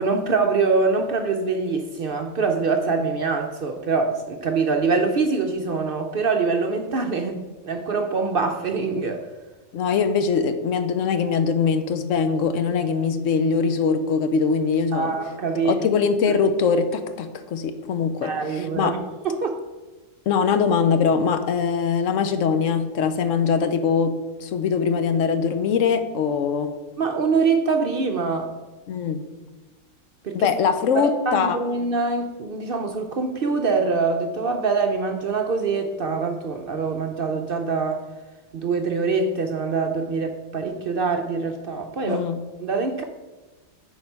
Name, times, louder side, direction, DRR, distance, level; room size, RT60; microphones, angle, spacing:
voice 1, 0.0-7.4 7.6-9.3 14.9-15.9 18.2-19.0 19.2-19.6 27.0-28.5 30.2-30.5 30.9-38.0 38.5-42.2 42.6-43.0, right 4 dB, 55° right, 0.7 m, -24 dB
voice 2, 9.7-15.1 15.6-18.3 18.8-18.9 20.3-24.1 24.4-26.7 28.9-29.2 30.3-31.6 42.0-42.4, left 6 dB, 75° left, 1.0 m, -22 dB
8.9 x 4.3 x 5.4 m
omnidirectional pair, 1.4 m